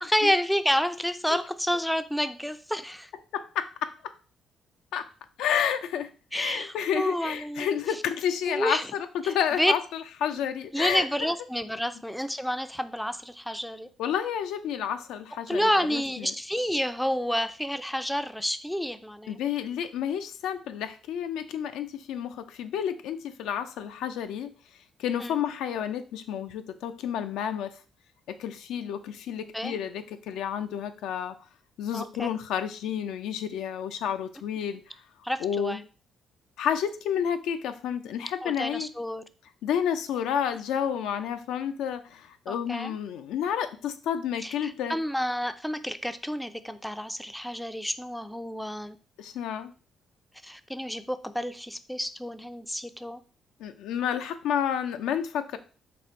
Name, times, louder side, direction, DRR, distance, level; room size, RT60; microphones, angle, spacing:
voice 1, 0.0-3.1 6.3-7.7 8.5-8.9 9.2-9.3 9.6-9.7 10.3-10.4 10.7-13.9 15.5-19.4 25.2-25.4 29.5-29.8 31.9-32.3 35.2-35.8 38.4-39.2 42.5-43.0 44.4-49.0 50.4-53.2, equal, ahead, 10 dB, 0.4 m, -29 dB
voice 2, 3.3-3.9 4.9-5.1 5.4-11.3 14.0-16.3 19.3-24.5 25.0-27.7 28.3-31.3 31.8-34.8 35.4-35.8 36.6-38.9 39.6-45.0 49.2-49.7 53.6-55.6, left 8 dB, 90° left, 8 dB, 0.4 m, -30 dB
4.1 x 2.5 x 4.4 m, 0.37 s
cardioid pair, 90°, 0 cm